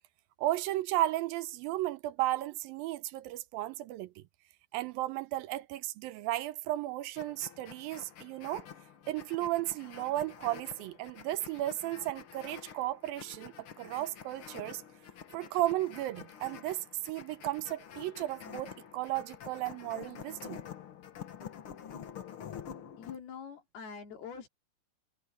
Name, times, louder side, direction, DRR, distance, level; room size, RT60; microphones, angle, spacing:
voice 1, 0.4-4.2 4.7-8.7 9.1-14.8 15.3-20.6, right 15 dB, 80° right, 2.4 m, -34 dB
sound 1, 7.2-23.2, left 8 dB, 55° left, 1.5 m, -48 dB
voice 2, 23.0-24.5, left 6 dB, 85° left, 4.9 m, -44 dB
omnidirectional pair, 4.3 m